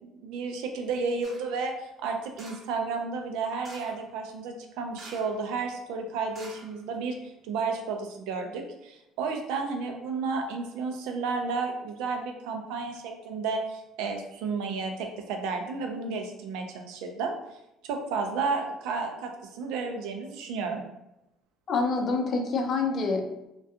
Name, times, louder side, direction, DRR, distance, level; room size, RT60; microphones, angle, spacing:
voice 1, 0.0-17.6 17.8-20.8, right 4 dB, 85° right, 3 dB, 0.4 m, -32 dB
sound 1, 1.2-1.6 2.3-2.8 3.6-4.1 4.9-5.4 5.7-5.8 6.3-7.2 7.7-7.8, right 2 dB, 35° right, 0.6 m, -48 dB
voice 2, 21.7-23.5, left 3 dB, 45° left, 3 dB, 0.4 m, -27 dB
2.3 x 2.2 x 2.7 m, 0.89 s
cardioid pair, 115°, 0 cm